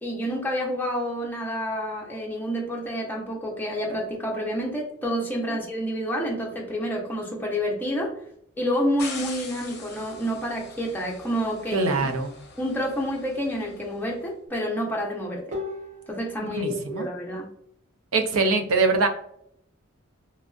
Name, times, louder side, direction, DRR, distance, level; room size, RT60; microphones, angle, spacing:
voice 1, 0.0-8.1 8.6-12.1 12.6-15.4 16.1-17.5, equal, 10° left, -2 dB, 0.7 m, -29 dB
sound 1, 9.0-14.1, left 4 dB, 50° left, 0.6 m, -43 dB
voice 2, 11.7-12.3 16.6-17.1 18.1-19.1, right 3 dB, 90° right, 6 dB, 0.5 m, -23 dB
sound 2, 12.0-12.5 15.5-16.4, left 3 dB, 35° right, 0.7 m, -36 dB
3.1 x 2.5 x 2.3 m, 0.70 s
head